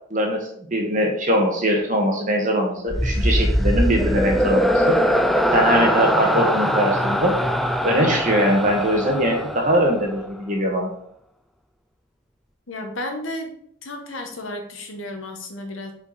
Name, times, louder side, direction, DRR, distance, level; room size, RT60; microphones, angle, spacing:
voice 1, 0.1-5.0 5.5-7.3 7.8-10.9, equal, 40° right, 0 dB, 1.4 m, -21 dB
sound 1, 2.9-10.3, equal, ahead, 0.3 m, -22 dB
voice 2, 12.7-13.5 13.8-15.9, left 1 dB, 80° left, 3 dB, 1.3 m, -32 dB
5.2 x 5.1 x 4.1 m, 0.68 s
head